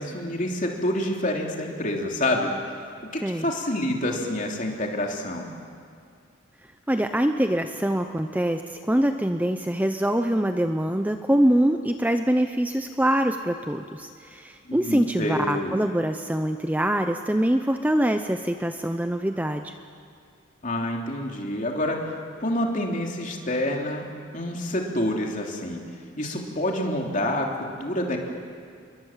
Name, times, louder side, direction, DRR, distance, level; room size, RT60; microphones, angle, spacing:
voice 1, 0.0-2.5 2.8-2.9 3.1-5.5 14.6-15.8 20.6-22.1 22.4-24.0 24.3-25.8 26.2-28.2, left 1 dB, 35° left, 1 dB, 3.2 m, -27 dB
voice 2, 6.9-19.7, right 1 dB, 10° right, 6 dB, 0.7 m, -24 dB
29.0 x 22.5 x 7.4 m, 2.3 s
head